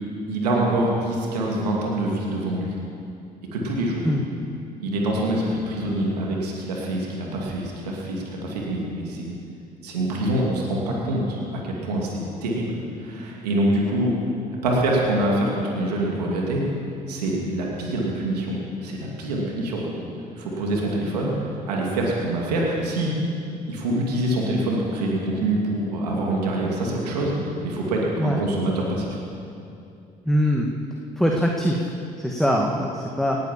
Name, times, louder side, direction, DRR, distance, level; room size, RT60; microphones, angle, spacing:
voice 1, 0.3-2.7 3.5-4.1 4.8-9.3 9.8-12.1 12.4-14.1 14.6-16.6 17.1-19.9 20.3-23.1 23.7-29.2, right 1 dB, 90° right, -2 dB, 2.5 m, -25 dB
voice 2, 30.3-30.7 31.2-31.9 32.2-33.4, equal, ahead, 0 dB, 1.7 m, -22 dB
18.5 x 9.5 x 7.4 m, 2.6 s
hypercardioid pair, 50°, 20 cm